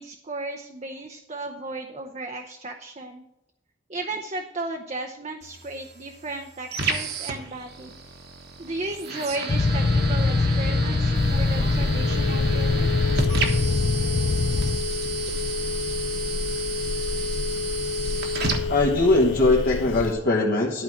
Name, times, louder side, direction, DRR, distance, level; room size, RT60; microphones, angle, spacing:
voice 1, 0.0-3.2 3.9-7.9 8.6-13.0, right 2 dB, 35° right, 4 dB, 0.7 m, -34 dB
sound 1, 5.4-19.4, right 4 dB, 55° right, 1.3 m, -33 dB
sound 2, 9.5-14.8, left 3 dB, 35° left, 0.4 m, -23 dB
Telephone, 11.2-20.1, left 4 dB, 85° left, 0.6 m, -29 dB
voice 2, 18.7-20.8, left 2 dB, 55° left, -3 dB, 1.2 m, -21 dB
11.5 x 4.7 x 7.1 m, 0.87 s
head